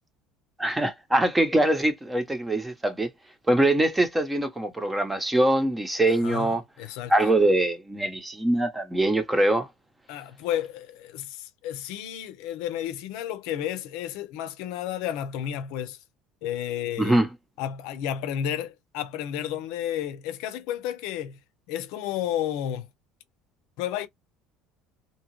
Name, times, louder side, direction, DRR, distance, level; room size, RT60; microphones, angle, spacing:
voice 1, 0.6-3.1 3.5-6.6 7.1-9.7 17.0-17.3, right 1 dB, 10° right, 0.8 m, -23 dB
voice 2, 6.2-7.1 10.1-16.0 16.4-17.2 17.6-21.4 21.7-22.9 23.8-24.1, left 10 dB, 75° left, 0.6 m, -32 dB
2.8 x 2.4 x 3.0 m
supercardioid pair, 110°, 0 cm